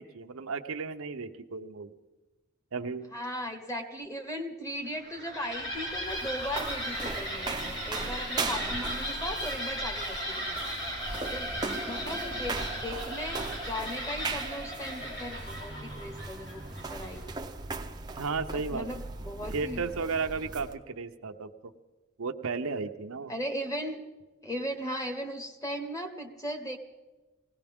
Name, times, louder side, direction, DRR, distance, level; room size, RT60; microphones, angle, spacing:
voice 1, 0.0-1.9 2.7-3.1 18.2-18.9 19.5-21.5 22.2-23.3, right 4 dB, 80° right, 6 dB, 0.8 m, -34 dB
voice 2, 3.1-10.6 11.3-11.5 11.8-16.6 16.9-17.2 18.5-19.8 23.3-24.0 24.4-26.8, equal, 15° left, 5 dB, 1.2 m, -37 dB
sound 1, 4.8-17.4, equal, 60° left, 6.5 m, -37 dB
sound 2, 5.5-20.8, right 3 dB, 20° right, 0.6 m, -39 dB
20.0 x 17.0 x 3.6 m, 1.2 s
head